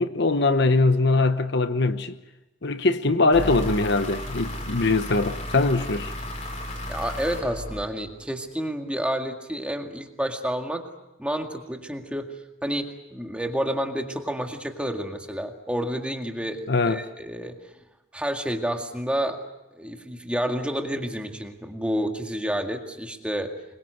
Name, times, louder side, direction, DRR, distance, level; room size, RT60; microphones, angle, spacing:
voice 1, 0.0-2.2 2.6-6.1 16.7-17.0, left 3 dB, 55° left, 1.0 m, -22 dB
sound 1, 3.3-8.3, left 1 dB, 35° left, 6.0 m, -34 dB
voice 2, 6.9-10.9 11.2-12.3 12.6-17.6 18.1-19.4 19.7-23.5, equal, 5° right, 2.0 m, -29 dB
26.0 x 22.5 x 7.9 m
head